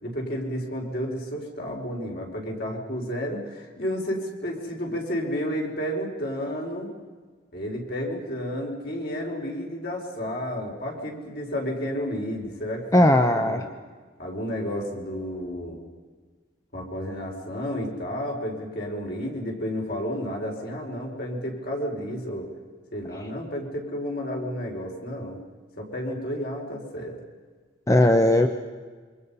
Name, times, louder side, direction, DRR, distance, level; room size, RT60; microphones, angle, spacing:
voice 1, 0.0-6.9 7.5-13.7 14.2-15.8 16.7-22.5 22.9-25.4 25.8-27.2, equal, 55° left, 0 dB, 4.7 m, -31 dB
voice 2, 12.9-13.6 27.9-28.5, left 1 dB, 15° left, 5 dB, 0.8 m, -18 dB
27.5 x 24.5 x 5.6 m, 1.5 s
head